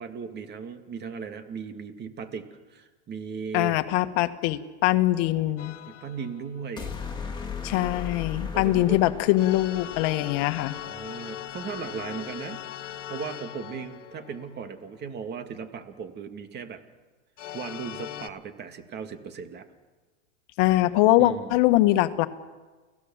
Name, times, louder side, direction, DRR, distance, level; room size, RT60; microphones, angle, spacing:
voice 1, 0.0-3.8 5.9-6.9 8.5-9.1 10.7-12.6 13.1-16.8 17.5-19.7 21.2-21.6, right 6 dB, 30° right, 7 dB, 2.5 m, -37 dB
voice 2, 3.5-5.7 7.6-10.7 20.6-22.3, left 16 dB, 50° left, 10 dB, 1.6 m, -22 dB
sound 1, 5.6-6.7 9.4-15.0 17.4-18.3, left 11 dB, 85° left, 1.6 m, -40 dB
sound 2, 6.8-11.0, left 6 dB, 15° left, 4.0 m, -37 dB
29.5 x 17.0 x 7.4 m, 1.3 s
hypercardioid pair, 120°, 35 cm